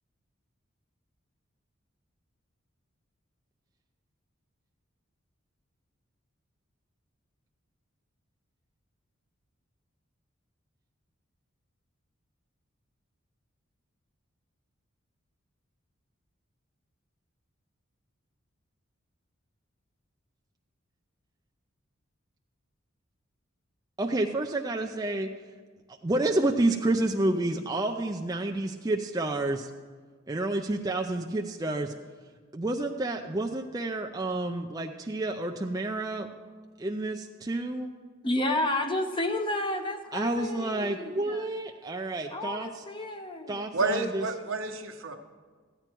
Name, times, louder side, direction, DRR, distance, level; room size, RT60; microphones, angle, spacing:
voice 1, 24.0-25.3 26.0-29.7 30.3-31.9 32.5-36.3 36.8-37.9 40.1-42.8 43.5-44.2, right 2 dB, 20° right, 2 dB, 0.4 m, -29 dB
voice 2, 38.2-41.5 42.3-43.7, left 1 dB, 25° left, 6 dB, 0.8 m, -31 dB
voice 3, 43.7-45.1, right 3 dB, 80° right, 5 dB, 1.1 m, -29 dB
14.5 x 9.1 x 4.5 m, 1.5 s
head